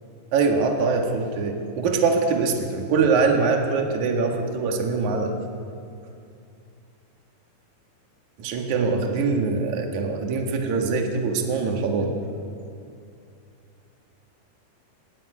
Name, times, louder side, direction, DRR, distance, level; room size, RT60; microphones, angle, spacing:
voice 1, 0.3-5.3 8.4-12.1, right 4 dB, 50° right, 2 dB, 2.7 m, -23 dB
20.0 x 15.5 x 9.7 m, 2.6 s
omnidirectional pair, 5.3 m